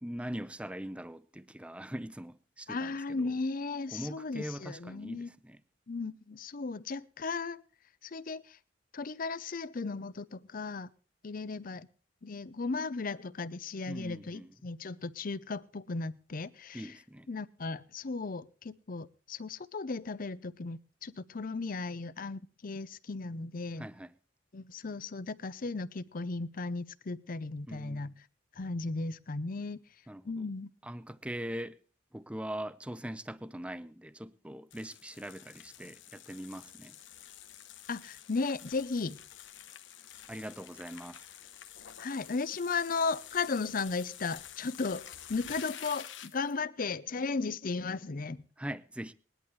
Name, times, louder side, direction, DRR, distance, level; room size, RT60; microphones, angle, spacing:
voice 1, 0.0-3.3 3.9-5.6 13.9-14.6 16.7-17.3 23.8-24.1 27.7-28.1 30.1-30.3 30.8-31.8 32.1-37.0 40.3-41.3 48.6-49.1, right 1 dB, 5° right, 0.5 m, -41 dB
voice 2, 2.7-5.3 5.9-7.6 8.0-8.6 8.9-10.9 11.2-11.9 12.2-16.9 17.3-23.9 24.5-28.1 28.6-29.8 30.2-30.7 37.9-39.2 42.0-48.4, left 4 dB, 50° left, 0.6 m, -36 dB
sound 1, 34.7-46.6, left 10 dB, 80° left, 0.9 m, -49 dB
19.5 x 11.0 x 3.2 m
head